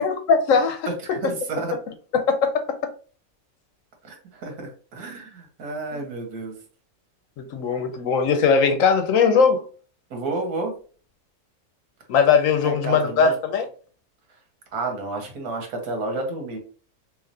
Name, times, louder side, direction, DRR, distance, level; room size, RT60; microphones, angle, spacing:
voice 1, 0.0-0.9 2.3-2.6 7.4-9.6 12.1-13.7, left 5 dB, 70° left, 0.9 m, -19 dB
voice 2, 1.0-1.8 4.0-6.6 10.1-10.7 12.6-13.3 14.7-16.6, right 3 dB, 90° right, 1.6 m, -30 dB
3.8 x 3.1 x 2.7 m
omnidirectional pair, 1.6 m